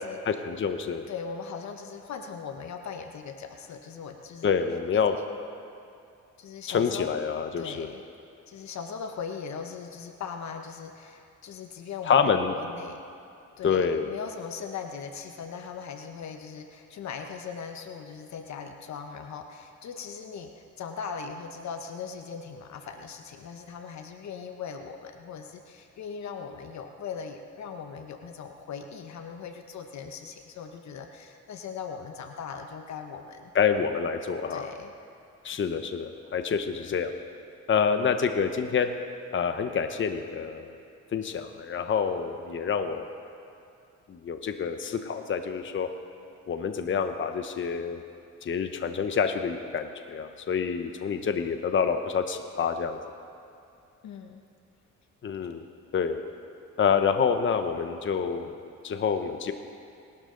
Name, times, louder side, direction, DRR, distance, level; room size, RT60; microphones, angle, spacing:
voice 1, 0.3-1.0 4.4-5.1 6.7-7.9 12.1-12.5 13.6-14.1 33.5-34.7 35.4-37.1 37.7-38.9 39.3-40.8 41.1-43.1 44.1-45.9 46.5-48.0 48.4-53.0 55.2-55.6 55.9-56.2 56.8-58.5 58.8-59.5, left 6 dB, 40° left, 7 dB, 0.9 m, -27 dB
voice 2, 1.1-4.5 4.9-5.4 6.4-7.1 7.6-8.0 8.5-13.0 13.6-33.5 34.5-34.9 54.0-54.4, left 6 dB, 65° left, 5 dB, 1.0 m, -39 dB
28.5 x 12.0 x 3.9 m, 2.5 s
cardioid pair, 90°, 30 cm